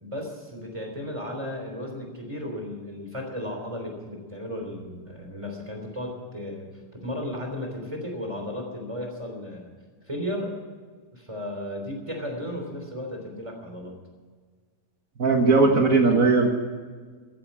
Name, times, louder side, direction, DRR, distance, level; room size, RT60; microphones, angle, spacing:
voice 1, 0.0-9.7 10.1-10.5 11.1-14.0, left 1 dB, 10° right, 2 dB, 3.0 m, -34 dB
voice 2, 15.2-16.5, right 3 dB, 65° right, 3 dB, 0.8 m, -18 dB
14.5 x 10.0 x 8.5 m, 1.5 s
omnidirectional pair, 3.6 m